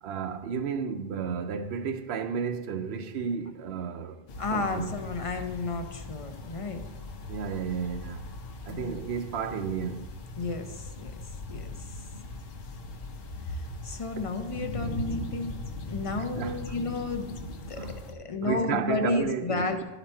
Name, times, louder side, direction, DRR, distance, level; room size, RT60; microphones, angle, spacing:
voice 1, 0.0-4.2 4.5-4.9 7.3-8.3 8.7-10.1 16.4-16.6 17.8-18.0 18.4-19.8, right 6 dB, 85° right, 0.9 m, -32 dB
sound 1, 4.3-18.1, left 2 dB, 70° left, 0.9 m, -40 dB
voice 2, 4.4-6.8 8.7-9.1 10.4-11.1 11.5-12.0 13.5-15.5 15.9-17.4 17.7-19.8, left 3 dB, 40° left, 0.5 m, -32 dB
11.5 x 4.0 x 4.4 m
omnidirectional pair, 1.0 m